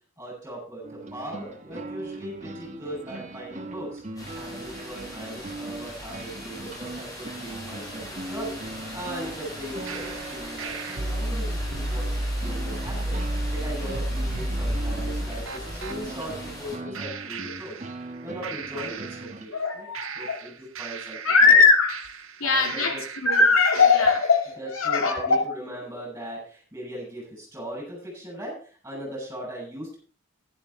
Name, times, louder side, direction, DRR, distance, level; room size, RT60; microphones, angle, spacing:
voice 1, 0.2-12.1 12.4-13.2 13.5-17.7 18.2-19.9 20.2-21.6 22.4-23.0 24.6-30.0, equal, 10° right, -4 dB, 7.3 m, -38 dB
sound 1, 0.8-19.5, right 2 dB, 35° right, 1.2 m, -40 dB
sound 2, 4.2-16.8, equal, 20° left, 4.4 m, -39 dB
sound 3, 9.9-16.0 16.9-18.2 18.4-19.6 19.9-23.4 23.7-24.4, right 1 dB, 85° right, 1.4 m, -32 dB
voice 2, 19.5-20.4 21.2-22.1 22.4-25.4, left 4 dB, 90° left, 3 dB, 2.8 m, -20 dB
11.5 x 11.0 x 4.4 m, 0.42 s
head